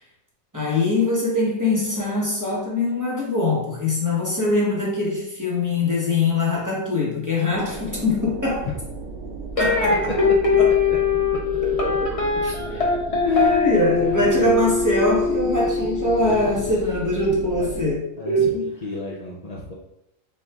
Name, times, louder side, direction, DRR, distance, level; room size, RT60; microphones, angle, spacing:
voice 1, 0.5-8.7 9.6-10.1 10.6-10.7 11.6-12.2 12.4-12.8 13.2-18.7, left 2 dB, 15° right, -5 dB, 0.8 m, -22 dB
sound 1, 7.5-18.0, right 4 dB, 85° right, 1.0 m, -35 dB
sound 2, 9.6-16.7, left 4 dB, 35° left, 0.7 m, -22 dB
voice 2, 13.2-13.6 14.0-14.6 16.2-16.7 17.6-17.8 18.2-19.7, left 3 dB, 80° left, -4 dB, 0.3 m, -35 dB
4.5 x 2.3 x 3.4 m, 0.82 s
omnidirectional pair, 1.4 m